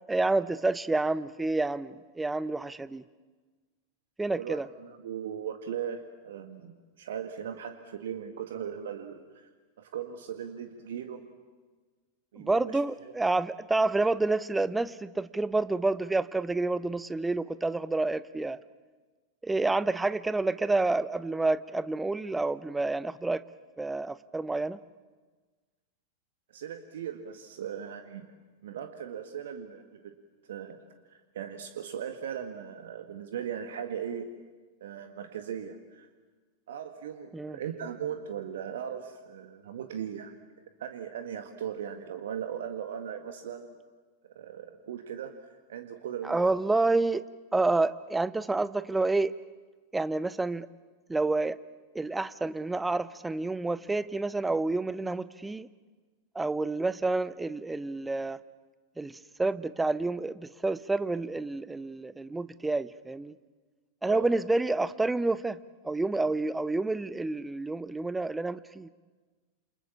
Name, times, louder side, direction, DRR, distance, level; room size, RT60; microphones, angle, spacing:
voice 1, 0.1-3.0 4.2-4.7 12.4-18.6 19.4-23.4 23.8-24.8 37.3-37.6 46.2-47.2 47.5-49.3 49.9-50.7 51.1-51.6 51.9-55.7 56.3-58.4 59.0-63.3 64.0-65.6 65.8-68.9, right 2 dB, 10° right, 16 dB, 0.9 m, -29 dB
voice 2, 4.3-9.2 9.8-11.2 12.3-13.1 26.5-28.3 28.6-30.1 30.5-30.8 31.1-34.3 34.8-36.1 36.7-40.3 40.8-43.8 44.2-46.5 64.1-64.3, right 8 dB, 60° right, 7 dB, 1.8 m, -38 dB
28.5 x 28.5 x 7.2 m, 1.4 s
figure-of-eight pair, 90°, 0 cm